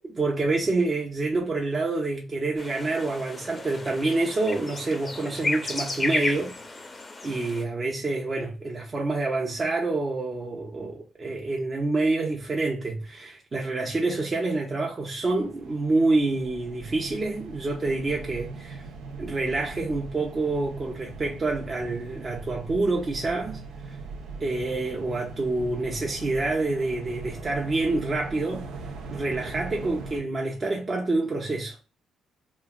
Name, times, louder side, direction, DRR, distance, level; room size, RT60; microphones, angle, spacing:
voice 1, 0.2-6.6 7.2-18.8 19.2-24.0 24.4-28.7 29.1-31.8, right 2 dB, 30° right, 0.7 m, -27 dB
sound 1, 2.6-7.6, left 3 dB, 25° left, 0.6 m, -33 dB
sound 2, 15.2-30.2, right 4 dB, 85° right, 0.6 m, -40 dB
3.0 x 2.5 x 2.3 m
cardioid pair, 90°, 0 cm